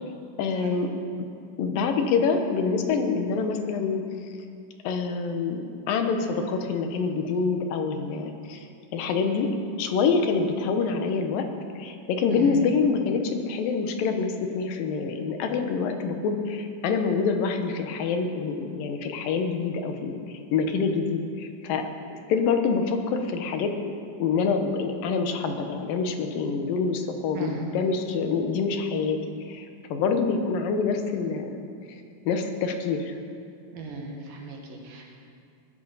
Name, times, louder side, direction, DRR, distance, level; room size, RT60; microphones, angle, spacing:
voice 1, 0.1-0.9 1.6-4.0 4.8-8.7 8.9-9.5 9.8-11.5 11.8-21.8 22.3-23.7 24.2-29.2 29.5-31.6 32.3-33.1, left 5 dB, 80° left, 5 dB, 2.8 m, -26 dB
voice 2, 12.3-12.6 27.3-27.7 33.7-35.0, right 4 dB, 90° right, 0 dB, 3.6 m, -37 dB
20.5 x 12.5 x 4.1 m, 2.4 s
omnidirectional pair, 3.9 m